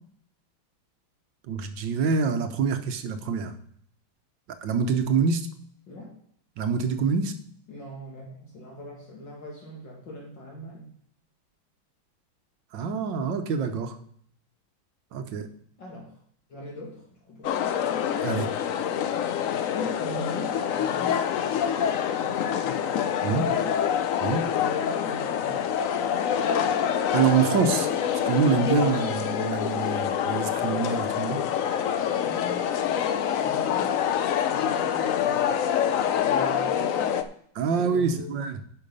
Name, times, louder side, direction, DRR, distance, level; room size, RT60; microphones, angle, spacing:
voice 1, 1.5-3.5 4.6-5.5 6.6-7.3 12.7-14.0 15.1-15.5 18.2-18.5 23.2-23.5 24.2-24.5 27.1-27.9 28.2-31.4 37.5-38.6, right 6 dB, 70° right, 9 dB, 1.5 m, -25 dB
voice 2, 7.7-10.9 15.8-16.2 16.5-17.7 19.7-21.5 22.2-22.7 23.2-23.7 24.5-25.7 32.3-33.0 33.4-34.0 34.4-35.6 36.1-37.2 37.6-38.3, left 1 dB, 65° left, -3 dB, 2.6 m, -41 dB
sound 1, 17.4-37.2, left 9 dB, 90° left, 0.7 m, -26 dB
10.0 x 5.9 x 5.4 m, 0.64 s
omnidirectional pair, 2.2 m